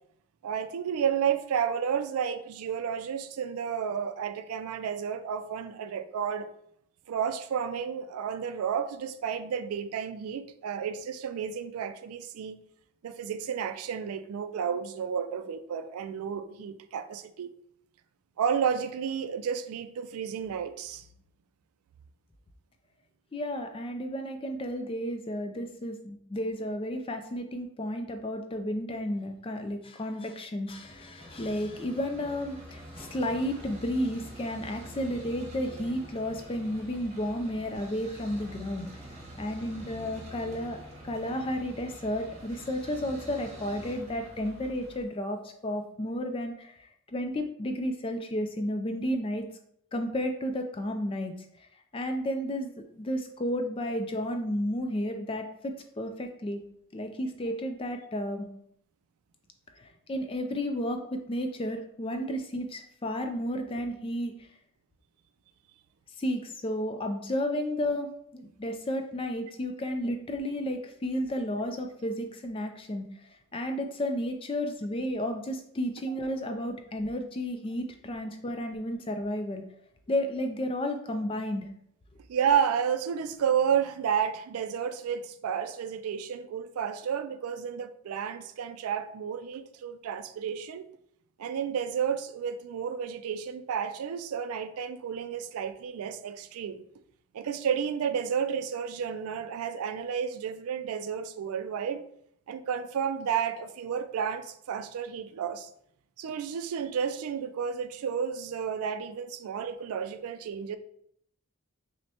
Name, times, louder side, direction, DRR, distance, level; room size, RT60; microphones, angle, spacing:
voice 1, 0.4-6.5 7.1-12.6 13.0-17.5 18.4-21.0 82.3-90.8 91.4-96.8 97.3-102.0 102.5-105.7 106.2-110.8, right 7 dB, 80° right, 11 dB, 0.3 m, -31 dB
voice 2, 23.3-38.9 39.4-40.8 41.0-49.5 49.9-51.3 51.9-56.6 56.9-58.5 59.8-64.5 66.2-73.1 73.5-79.6 80.1-81.7, equal, 25° left, 6 dB, 0.3 m, -32 dB
sound 1, 30.7-45.0, right 1 dB, 30° right, 0.7 m, -46 dB
6.0 x 2.1 x 2.8 m, 0.70 s
head